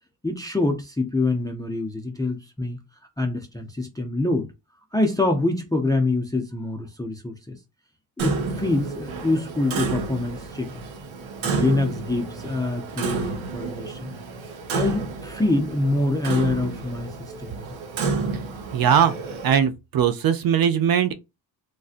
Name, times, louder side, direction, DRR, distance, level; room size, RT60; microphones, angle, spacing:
voice 1, 0.2-2.8 3.2-4.5 4.9-7.6 8.2-10.9 11.4-14.1 14.7-17.7, left 2 dB, 10° left, 0.3 m, -25 dB
Clock, 8.2-19.5, right 4 dB, 85° right, 0.9 m, -30 dB
voice 2, 18.7-19.1 19.4-21.1, right 8 dB, 50° right, 0.5 m, -20 dB
3.2 x 2.5 x 2.4 m
cardioid pair, 140°, 46 cm